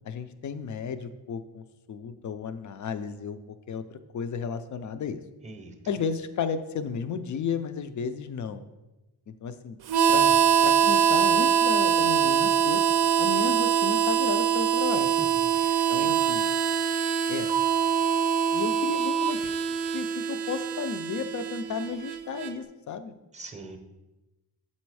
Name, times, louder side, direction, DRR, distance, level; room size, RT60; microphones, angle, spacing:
voice 1, 0.0-5.2 5.9-8.6 9.3-9.8 10.1-12.8 13.2-15.1 15.9-16.4 17.3-17.5 18.5-19.5 19.9-23.1, left 6 dB, 45° left, 11 dB, 0.4 m, -33 dB
voice 2, 5.4-5.7 15.1-16.1 23.3-23.8, right 3 dB, 15° right, 6 dB, 0.6 m, -43 dB
Harmonica, 9.9-22.5, right 8 dB, 65° right, 0.5 m, -24 dB
7.6 x 4.2 x 4.7 m, 1.0 s
wide cardioid pair, 180°, 41 cm